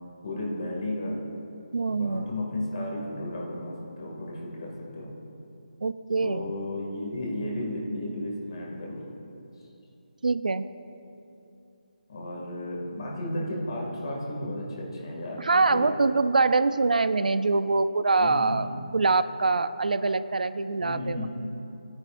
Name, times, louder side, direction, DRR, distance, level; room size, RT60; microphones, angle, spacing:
voice 1, 0.2-1.2 1.9-5.1 6.2-9.0 12.1-15.9 18.2-18.7 20.8-21.3, left 1 dB, 40° left, -3 dB, 2.2 m, -33 dB
voice 2, 1.7-2.3 5.8-6.5 10.2-10.7 15.4-18.7 18.9-21.3, right 3 dB, 80° right, 13 dB, 0.4 m, -24 dB
15.5 x 9.7 x 2.5 m, 2.8 s
hypercardioid pair, 175°, 4 cm